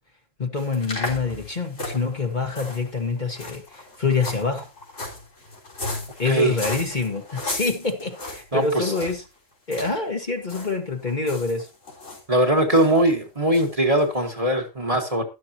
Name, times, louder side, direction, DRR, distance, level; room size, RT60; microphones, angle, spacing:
voice 1, 0.4-4.7 6.2-9.2 9.7-11.7, left 4 dB, 35° left, 1.6 m, -26 dB
sound 1, 0.6-9.3 9.7-10.0 10.2-10.7 11.0-12.2 12.7-12.9 13.5-13.7 14.0-14.1, left 2 dB, 75° left, 4.1 m, -35 dB
voice 2, 8.5-8.9 12.3-15.3, right 1 dB, 25° right, 1.8 m, -21 dB
12.5 x 11.5 x 2.9 m
omnidirectional pair, 1.3 m